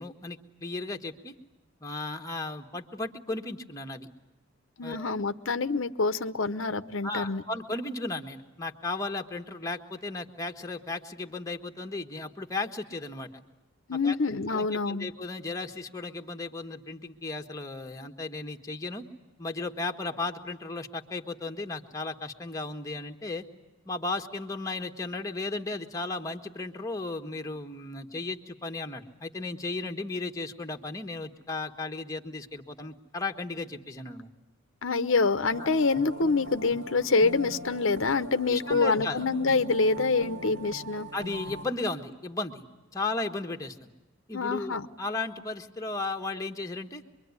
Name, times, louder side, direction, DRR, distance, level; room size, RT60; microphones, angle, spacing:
voice 1, 0.0-1.3 1.8-4.1 4.8-5.1 7.0-13.4 14.0-14.2 14.5-19.0 19.4-23.4 23.8-34.3 35.6-35.7 38.5-39.2 41.1-42.6 42.9-43.9 44.3-47.0, left 3 dB, 15° left, 4 dB, 1.4 m, -35 dB
voice 2, 4.8-7.4 13.9-15.1 34.8-41.1 44.3-44.9, left 4 dB, 75° left, 10 dB, 0.9 m, -26 dB
sound 1, 35.5-41.6, equal, 55° right, 2.1 m, -41 dB
26.0 x 23.0 x 9.6 m, 1.1 s
head